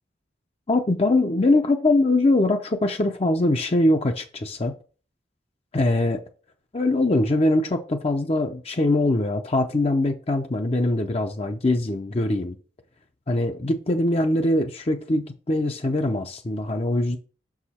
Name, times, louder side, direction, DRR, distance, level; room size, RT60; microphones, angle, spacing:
voice 1, 0.7-4.8 5.7-6.2 6.7-12.6 13.3-17.2, left 2 dB, 35° left, 0.6 m, -22 dB
6.3 x 4.8 x 4.2 m
head